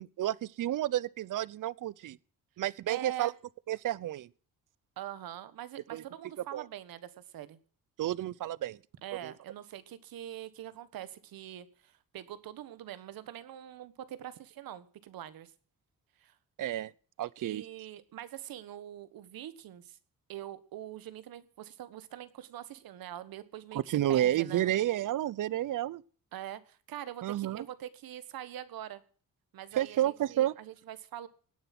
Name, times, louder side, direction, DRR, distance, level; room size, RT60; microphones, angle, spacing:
voice 1, 0.0-2.2 2.6-3.3 3.7-4.3 5.9-6.0 6.5-6.6 8.0-8.8 9.2-9.3 16.6-16.9 17.2-17.6 23.9-26.0 27.2-27.7 29.8-30.5, right 13 dB, 65° right, 0.7 m, -30 dB
voice 2, 2.9-3.3 5.0-7.6 9.0-15.5 16.2-16.3 17.4-20.0 20.3-24.7 26.3-29.0 29.5-31.3, right 12 dB, 80° right, 1.4 m, -44 dB
17.5 x 9.7 x 6.0 m
cardioid pair, 95°, 35 cm